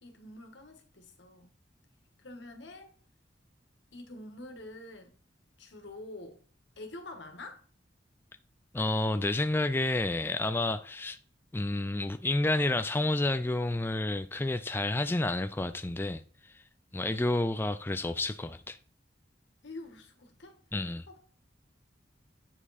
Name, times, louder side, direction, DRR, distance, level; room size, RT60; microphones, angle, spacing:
voice 1, 0.0-1.6 2.2-2.9 3.9-5.1 5.6-6.4 6.8-7.6 17.0-17.3 19.6-20.6 21.1-21.2, left 2 dB, 80° left, 1.6 m, -46 dB
voice 2, 8.7-11.2 11.5-16.2 16.9-18.8 20.7-21.1, left 2 dB, 10° left, 0.3 m, -30 dB
8.8 x 4.8 x 4.2 m
head